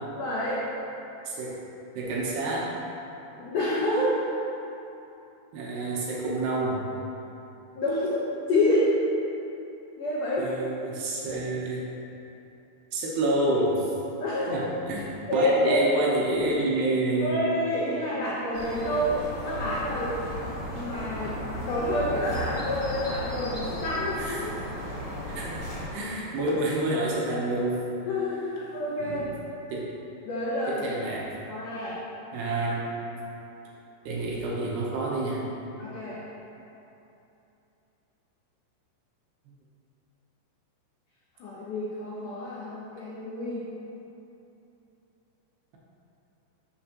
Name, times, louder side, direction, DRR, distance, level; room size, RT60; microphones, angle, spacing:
voice 1, 0.1-0.6 3.3-4.1 7.8-8.2 8.5-8.9 10.0-10.5 14.2-14.6 15.3-15.9 17.2-20.1 20.7-21.3 21.7-24.5 28.1-29.3 30.3-30.9 31.5-32.0 35.8-36.2 41.4-43.6, left 1 dB, 85° left, -8 dB, 1.8 m, -28 dB
voice 2, 1.3-1.6 2.0-2.7 5.5-6.8 10.4-11.8 12.9-13.9 14.5-15.1 15.3-17.4 24.2-24.5 25.4-27.8 29.0-29.3 29.7-29.8 30.7-31.3 32.3-33.1 34.1-35.4, right 2 dB, 75° right, -4 dB, 2.7 m, -28 dB
sound 1, 18.5-25.9, equal, 45° left, 1.8 m, -35 dB
12.0 x 6.5 x 2.9 m, 2.9 s
omnidirectional pair, 5.4 m